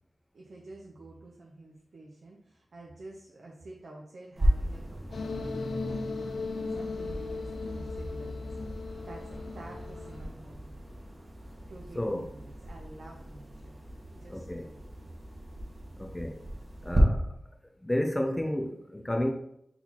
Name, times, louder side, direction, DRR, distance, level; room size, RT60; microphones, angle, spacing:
voice 1, 0.3-4.8 5.1-6.2 6.7-10.7 11.7-13.5 14.1-15.1, right 2 dB, 75° right, -1 dB, 0.7 m, -49 dB
sound 1, 4.4-17.0, right 1 dB, 35° right, 1.1 m, -36 dB
sound 2, 5.1-10.3, left 3 dB, 80° left, 0.4 m, -37 dB
voice 2, 12.0-12.3 14.3-14.7 16.0-16.4 16.8-17.2 17.8-19.3, left 1 dB, 15° left, 2 dB, 0.5 m, -31 dB
4.1 x 4.1 x 2.9 m, 0.76 s
wide cardioid pair, 65°, 0 cm